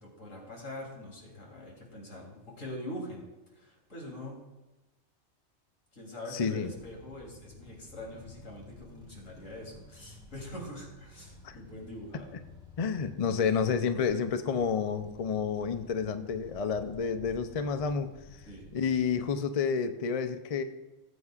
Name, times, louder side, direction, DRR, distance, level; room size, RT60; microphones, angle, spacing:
voice 1, 0.0-4.5 5.9-12.4 18.5-18.7, left 1 dB, 70° left, -2 dB, 3.5 m, -44 dB
voice 2, 6.3-6.7 11.4-11.6 12.8-18.1 18.7-20.6, left 6 dB, 50° left, 9 dB, 0.4 m, -30 dB
sound 1, 6.5-19.3, left 1 dB, 5° right, 1.3 m, -52 dB
18.5 x 8.0 x 2.4 m, 1.1 s
omnidirectional pair, 1.4 m